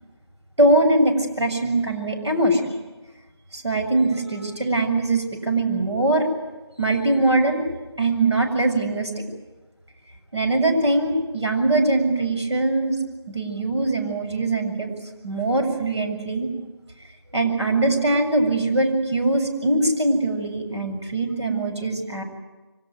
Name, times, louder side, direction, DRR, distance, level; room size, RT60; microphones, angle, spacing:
voice 1, 0.6-2.6 3.5-6.3 6.8-7.6 8.0-9.2 10.3-13.0 13.3-14.9 15.2-16.5 17.3-22.2, right 2 dB, 80° right, 4 dB, 7.3 m, -22 dB
24.5 x 18.5 x 9.5 m, 1.2 s
figure-of-eight pair, 165°, 14 cm